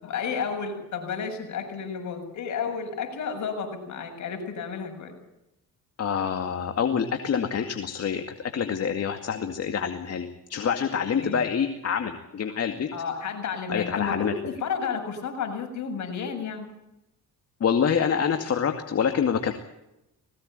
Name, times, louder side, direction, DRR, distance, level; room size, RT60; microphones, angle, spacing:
voice 1, 0.0-5.1 11.2-11.4 12.9-16.7, left 6 dB, 70° left, 4 dB, 7.3 m, -32 dB
voice 2, 6.0-12.9 13.7-14.3 17.6-19.5, left 7 dB, 55° left, 6 dB, 2.3 m, -26 dB
21.0 x 17.5 x 9.0 m, 0.88 s
cardioid pair, 90°, 30 cm